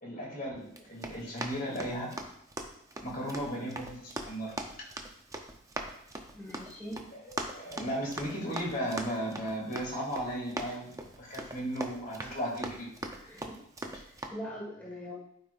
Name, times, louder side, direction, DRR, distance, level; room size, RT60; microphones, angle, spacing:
voice 1, 0.0-2.1 3.0-4.5 7.1-12.9 13.2-13.4 13.9-14.0, equal, 45° left, -2 dB, 2.4 m, -36 dB
Run, 0.7-14.3, right 2 dB, 15° right, 0.6 m, -42 dB
voice 2, 6.3-7.0 13.3-13.6 13.9-15.1, equal, 10° left, -7 dB, 1.6 m, -42 dB
12.5 x 5.2 x 2.5 m, 0.72 s
head